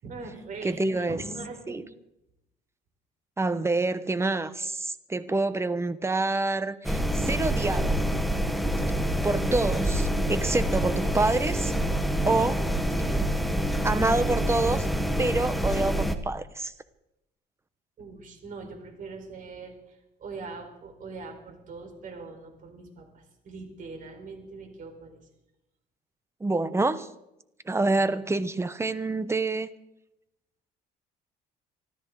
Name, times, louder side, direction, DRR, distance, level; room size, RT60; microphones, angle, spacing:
voice 1, 0.0-1.8 18.0-19.8 20.2-25.2, right 3 dB, 50° right, 4 dB, 4.5 m, -41 dB
voice 2, 0.6-1.2 1.7-1.9 3.4-8.0 9.2-11.7 12.3-12.7 13.1-13.2 13.8-14.9 15.2-16.7 26.4-27.1 27.7-29.7, right 2 dB, 15° right, 14 dB, 1.0 m, -27 dB
sound 1, 6.8-16.2, equal, ahead, 1.3 m, -26 dB
24.5 x 14.0 x 3.9 m, 0.85 s
cardioid pair, 110°, 17 cm